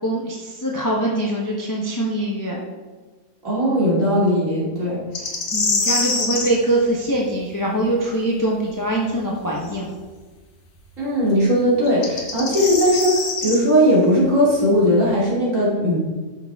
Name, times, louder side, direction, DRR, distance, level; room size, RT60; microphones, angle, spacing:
voice 1, 0.0-2.6 5.5-9.9, right 1 dB, 15° left, -2 dB, 0.8 m, -23 dB
voice 2, 3.4-5.0 11.0-16.0, equal, 50° right, -7 dB, 3.2 m, -18 dB
sound 1, 5.1-6.5 9.7-9.8 11.9-13.6, left 3 dB, 70° left, 1.8 m, -24 dB
9.2 x 6.4 x 3.6 m, 1.3 s
omnidirectional pair, 1.7 m